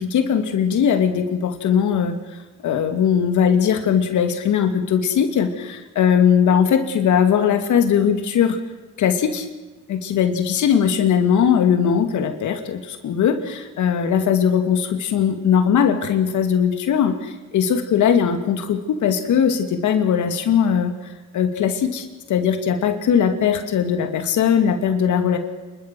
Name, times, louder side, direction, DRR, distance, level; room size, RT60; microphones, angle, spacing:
voice 1, 0.0-2.2 2.6-8.6 9.0-9.5 9.9-20.9 21.3-25.4, left 8 dB, 75° left, 7 dB, 2.6 m, -19 dB
28.5 x 13.0 x 7.8 m, 1.3 s
cardioid pair, 90°, 30 cm